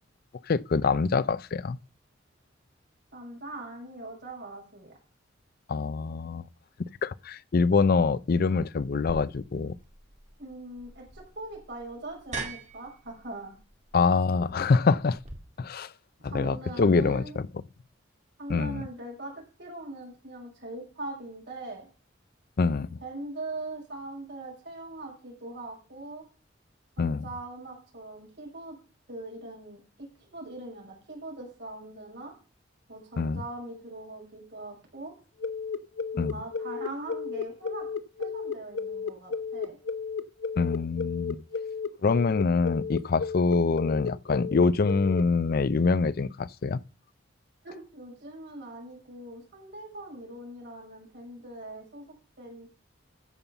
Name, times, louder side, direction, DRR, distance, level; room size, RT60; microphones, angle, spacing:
voice 1, 0.5-1.8 5.7-6.5 6.8-9.8 13.9-15.2 15.6-15.9 16.2-17.5 18.5-18.8 22.6-23.0 27.0-27.2 33.2-33.4 36.2-36.4 40.6-41.4 42.0-46.8, left 4 dB, 55° left, 0.5 m, -25 dB
voice 2, 3.1-5.0 10.4-13.5 16.2-17.4 18.4-21.9 23.0-26.2 27.0-28.8 29.1-32.3 32.9-35.2 36.1-37.9 38.2-39.8 47.6-52.0 52.4-52.7, right 2 dB, 65° right, 6.1 m, -41 dB
sound 1, 9.0-15.4, right 3 dB, 40° right, 1.9 m, -43 dB
sound 2, 35.4-45.2, left 5 dB, 90° left, 0.7 m, -33 dB
14.5 x 5.5 x 6.9 m
head